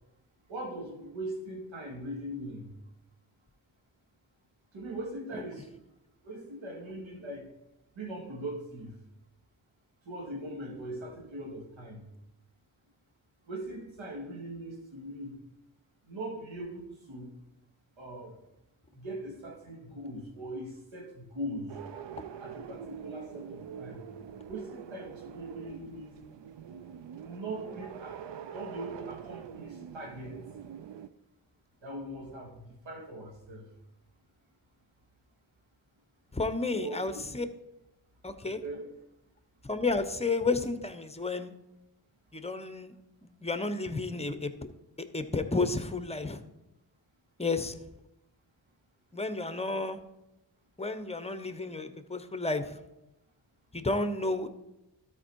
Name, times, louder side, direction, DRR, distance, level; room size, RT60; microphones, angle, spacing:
voice 1, 0.5-2.7 4.7-5.7 6.2-7.5 7.9-9.0 10.0-12.1 13.5-15.4 16.1-17.3 18.0-18.4 18.9-21.8 22.4-24.0 24.5-26.2 27.2-28.2 28.5-30.4 31.8-33.7 36.7-37.2 38.4-38.9, right 1 dB, 85° right, 0 dB, 2.2 m, -40 dB
sound 1, 21.7-31.1, right 8 dB, 70° right, 0.6 m, -44 dB
voice 2, 36.3-37.5 38.2-38.6 39.6-41.5 42.3-42.9 43.2-44.5 45.0-46.4 47.4-47.7 49.1-50.0 50.8-52.8 53.7-54.5, left 3 dB, 15° left, 10 dB, 0.9 m, -31 dB
13.0 x 4.6 x 4.6 m, 0.91 s
cardioid pair, 50°, 45 cm